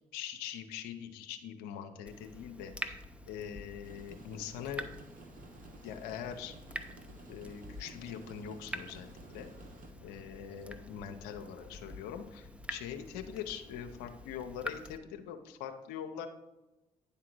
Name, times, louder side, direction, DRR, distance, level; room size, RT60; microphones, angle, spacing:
voice 1, 0.1-3.0 3.3-4.9 5.8-6.6 7.3-9.5 10.0-16.3, left 8 dB, 90° left, 6 dB, 0.6 m, -43 dB
Water tap faucet / Drip, 2.1-15.0, equal, 5° right, 0.8 m, -47 dB
sound 1, 3.8-9.9, right 3 dB, 50° right, 1.3 m, -54 dB
sound 2, 4.8-12.2, right 1 dB, 90° right, 1.1 m, -60 dB
9.8 x 3.7 x 6.0 m, 1.0 s
hypercardioid pair, 50°, 17 cm